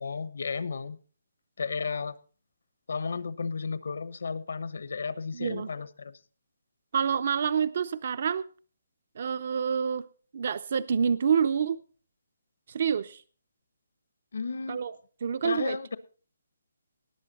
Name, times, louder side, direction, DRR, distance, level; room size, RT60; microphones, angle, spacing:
voice 1, 0.0-1.0 1.6-2.1 2.9-6.1 14.3-14.8 15.4-16.0, left 5 dB, 70° left, 15 dB, 1.1 m, -33 dB
voice 2, 5.3-5.7 6.9-8.5 9.2-10.0 10.3-11.8 12.7-13.2 14.7-15.0 15.2-16.0, right 7 dB, 45° right, 14 dB, 0.5 m, -27 dB
18.5 x 8.1 x 4.2 m, 0.40 s
hypercardioid pair, 170°, 0 cm